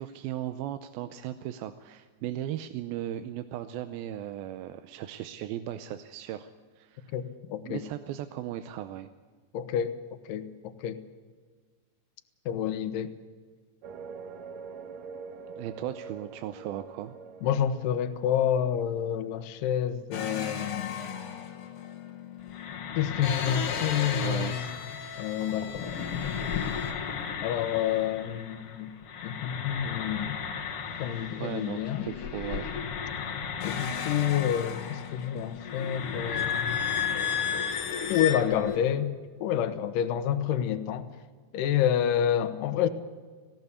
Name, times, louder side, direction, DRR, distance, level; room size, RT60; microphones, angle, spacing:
voice 1, 0.0-6.5 6.8-7.1 7.7-9.1 15.6-17.2 24.1-24.5 31.4-32.7, right 12 dB, 85° right, 9 dB, 2.6 m, -37 dB
voice 2, 7.1-7.8 9.5-9.9 10.3-11.0 12.5-13.1 17.4-21.3 23.0-24.8 25.2-26.5 27.4-28.9 29.2-30.4 31.0-32.2 33.6-36.8 38.1-39.1 39.4-41.1 41.5-42.9, left 9 dB, 75° left, 11 dB, 2.6 m, -29 dB
sound 1, 13.8-18.6, right 5 dB, 60° right, 2.1 m, -44 dB
sound 2, 20.1-28.8 29.0-38.8, left 7 dB, 50° left, 2.0 m, -34 dB
19.5 x 16.5 x 8.3 m, 1.5 s
omnidirectional pair, 4.2 m